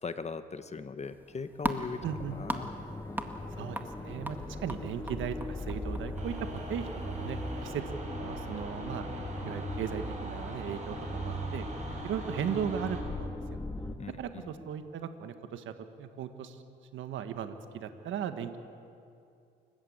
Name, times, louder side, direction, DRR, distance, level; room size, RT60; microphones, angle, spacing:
voice 1, 0.0-2.0 2.3-2.7 14.0-14.1, left 4 dB, 35° left, 11 dB, 1.1 m, -38 dB
sound 1, 1.0-7.8, right 1 dB, 10° right, 1.8 m, -41 dB
sound 2, 2.0-13.9, left 2 dB, 15° left, 1.6 m, -40 dB
voice 2, 2.0-2.4 3.6-7.8 8.2-9.1 9.4-11.7 12.0-13.6 14.2-16.6 16.9-18.6, right 8 dB, 75° right, 8 dB, 1.5 m, -37 dB
sound 3, 6.1-13.0, right 3 dB, 35° right, 6.6 m, -40 dB
29.0 x 14.5 x 8.7 m, 2.5 s
cardioid pair, 90°, 20 cm